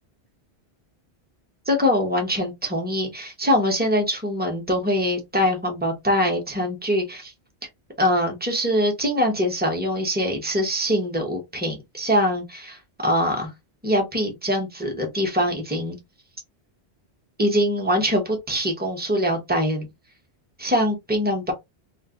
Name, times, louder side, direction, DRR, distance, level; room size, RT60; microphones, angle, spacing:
voice 1, 1.7-7.3 8.0-13.5 13.8-16.0 17.4-19.9 20.6-21.5, equal, 10° right, 0.9 m, -23 dB
2.5 x 2.5 x 3.6 m
omnidirectional pair, 1.1 m